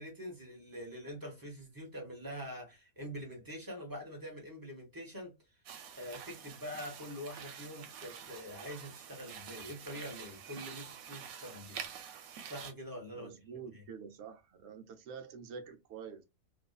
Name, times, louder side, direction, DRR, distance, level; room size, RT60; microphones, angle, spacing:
voice 1, 0.0-5.3 6.0-11.8 12.4-13.8, equal, 20° right, 0.8 m, -45 dB
sound 1, 5.7-12.7, right 8 dB, 85° right, 1.0 m, -47 dB
voice 2, 13.1-16.2, right 6 dB, 65° right, 0.8 m, -47 dB
2.6 x 2.3 x 2.2 m
omnidirectional pair, 1.4 m